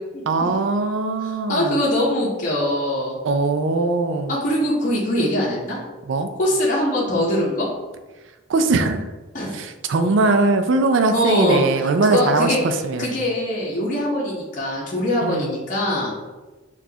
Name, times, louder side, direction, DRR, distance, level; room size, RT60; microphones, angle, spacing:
voice 1, 0.3-1.8 3.2-4.4 6.1-6.3 8.5-9.1 9.5-13.1 15.2-15.5, right 3 dB, 65° right, 7 dB, 0.4 m, -21 dB
voice 2, 1.5-3.2 4.3-5.8 6.4-7.7 9.3-9.5 11.1-11.6 12.1-12.6 13.0-16.1, left 1 dB, 40° left, -5 dB, 0.8 m, -22 dB
6.0 x 2.4 x 2.8 m, 1.2 s
head